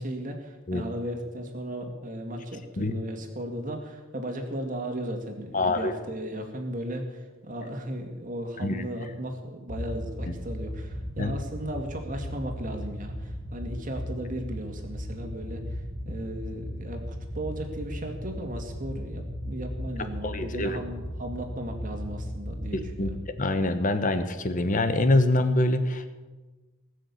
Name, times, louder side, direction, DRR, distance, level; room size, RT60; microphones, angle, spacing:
voice 1, 0.0-23.2, right 1 dB, 40° right, 4 dB, 2.2 m, -36 dB
voice 2, 5.5-5.9 8.6-8.8 11.2-11.3 20.2-20.8 22.7-26.1, left 2 dB, 40° left, 9 dB, 1.0 m, -25 dB
sound 1, 9.7-23.1, equal, ahead, 1.8 m, -36 dB
19.5 x 6.6 x 8.5 m, 1.2 s
head